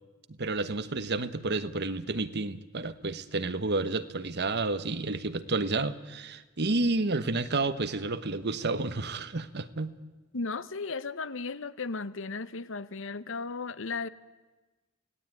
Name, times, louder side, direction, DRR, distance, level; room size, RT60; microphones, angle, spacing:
voice 1, 0.4-9.9, right 3 dB, 55° right, 12 dB, 1.2 m, -30 dB
voice 2, 10.3-14.1, left 4 dB, 65° left, 15 dB, 0.9 m, -35 dB
28.0 x 17.5 x 9.2 m, 1.2 s
head